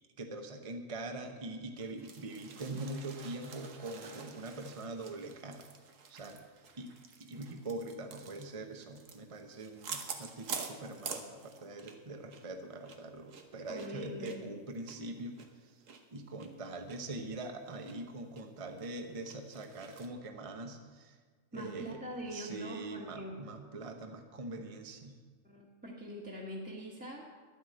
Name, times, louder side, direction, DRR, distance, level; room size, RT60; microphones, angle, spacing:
voice 1, 0.2-5.7 6.1-6.4 6.8-6.9 7.2-15.8 16.1-21.2 21.5-22.0 22.3-25.2, right 2 dB, 30° right, 5 dB, 1.0 m, -43 dB
sound 1, 1.8-12.0 12.3-12.4 12.8-16.0 16.4-16.5 16.9-17.0 17.4-17.9 18.4-18.5 18.8-20.1, right 5 dB, 85° right, 1.5 m, -47 dB
voice 2, 13.7-14.5 21.5-23.4 25.4-27.3, equal, 5° right, -3 dB, 1.4 m, -43 dB
11.5 x 9.2 x 7.8 m, 1.5 s
omnidirectional pair, 1.3 m